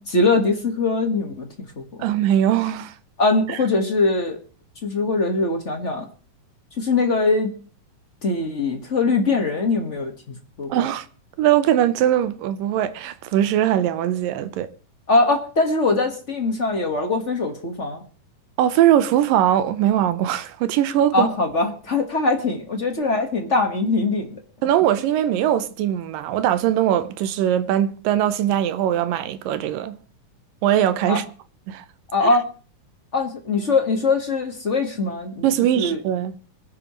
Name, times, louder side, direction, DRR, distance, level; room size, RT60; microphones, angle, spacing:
voice 1, 0.0-2.1 3.2-4.4 4.8-6.1 6.8-7.5 8.2-10.8 15.1-18.0 21.1-24.4 31.1-31.2 32.1-32.4 33.1-35.4 35.8-36.0, left 3 dB, 45° left, 0.9 m, -22 dB
voice 2, 2.0-2.9 3.5-3.6 10.7-11.1 11.4-14.7 18.6-21.3 24.6-30.0 30.6-31.2 31.7-31.8 35.4-36.4, right 11 dB, 80° right, 2.5 m, -21 dB
24.5 x 11.0 x 3.1 m
omnidirectional pair, 3.9 m